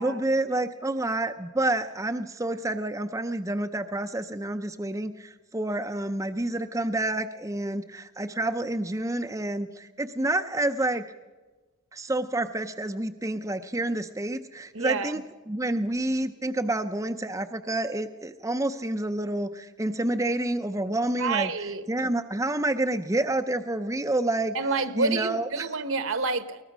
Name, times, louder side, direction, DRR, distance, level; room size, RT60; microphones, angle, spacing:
voice 1, 0.0-11.1 11.9-15.2 15.5-21.5 21.9-24.6 25.0-25.6, right 1 dB, 15° right, 6 dB, 0.6 m, -28 dB
voice 2, 14.7-15.2 21.2-21.9 24.5-26.6, right 4 dB, 60° right, 12 dB, 1.2 m, -28 dB
22.0 x 19.0 x 6.2 m, 1.3 s
head